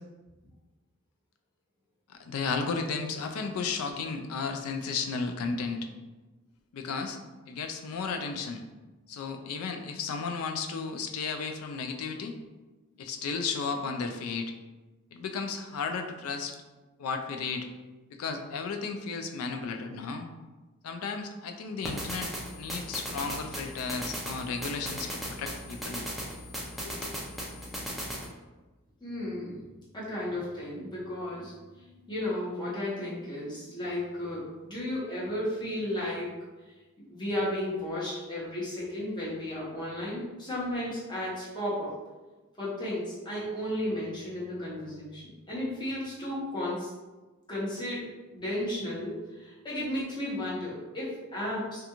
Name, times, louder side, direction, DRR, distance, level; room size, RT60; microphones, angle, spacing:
voice 1, 2.1-5.8 6.7-7.2 7.5-8.6 9.1-12.3 13.0-14.5 15.1-16.6 17.0-17.7 18.2-20.3 20.8-22.3 22.6-26.0 26.8-27.1, left 5 dB, 75° left, 5 dB, 0.3 m, -34 dB
sound 1, 21.8-28.3, equal, ahead, 0.3 m, -37 dB
voice 2, 29.0-29.6 29.9-31.5 32.1-36.3 37.0-41.9 42.6-46.9 47.5-51.9, left 1 dB, 20° left, -8 dB, 0.8 m, -34 dB
2.5 x 2.2 x 2.8 m, 1.2 s
head